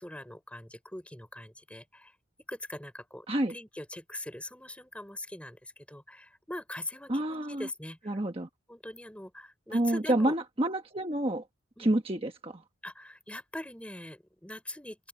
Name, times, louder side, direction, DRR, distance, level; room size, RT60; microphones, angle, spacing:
voice 1, 0.0-2.2 2.5-8.2 8.7-10.3 11.2-11.4 11.8-11.9 12.8-15.1, left 1 dB, 5° left, 3.5 m, -42 dB
voice 2, 7.1-7.7 8.1-8.5 9.7-11.4 11.8-12.6, right 1 dB, 30° right, 1.3 m, -28 dB
open air
head